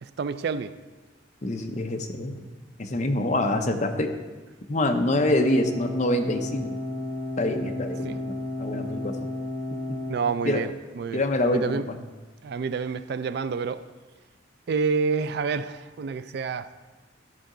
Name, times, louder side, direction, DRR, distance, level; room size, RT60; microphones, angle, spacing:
voice 1, 0.0-0.7 8.0-8.2 10.1-11.8 12.4-13.8 14.7-16.7, right 5 dB, 55° right, 13 dB, 0.3 m, -28 dB
voice 2, 1.4-2.4 2.8-4.1 4.7-6.7 7.4-8.3 8.6-9.1 9.9-10.0 10.4-10.6 11.1-11.8, left 1 dB, 35° left, 6 dB, 0.6 m, -25 dB
sound 1, 5.1-10.1, left 2 dB, 20° left, 3.1 m, -32 dB
12.0 x 5.6 x 3.8 m, 1.3 s
head